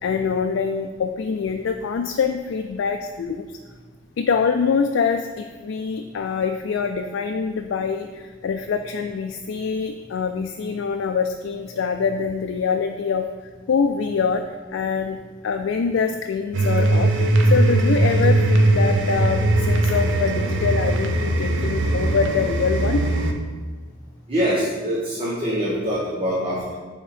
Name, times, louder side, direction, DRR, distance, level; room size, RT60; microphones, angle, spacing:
voice 1, 0.0-3.5 4.2-13.3 13.7-14.4 14.7-23.0, left 5 dB, 90° left, 5 dB, 0.3 m, -24 dB
sound 1, 16.5-23.3, right 2 dB, 80° right, 0.7 m, -20 dB
voice 2, 24.3-26.7, equal, 30° right, -7 dB, 1.1 m, -24 dB
7.1 x 3.5 x 5.0 m, 1.4 s
head